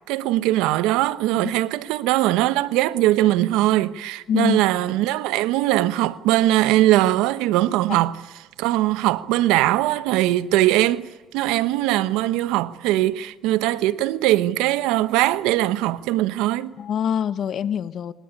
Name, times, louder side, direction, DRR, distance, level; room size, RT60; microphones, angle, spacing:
voice 1, 0.1-8.2 8.6-11.1 11.3-16.8, right 15 dB, 90° right, 1.0 m, -21 dB
voice 2, 4.3-4.6 7.9-8.0 16.8-18.1, left 8 dB, 60° left, 1.3 m, -25 dB
24.0 x 19.5 x 10.0 m
cardioid pair, 90°, 0 cm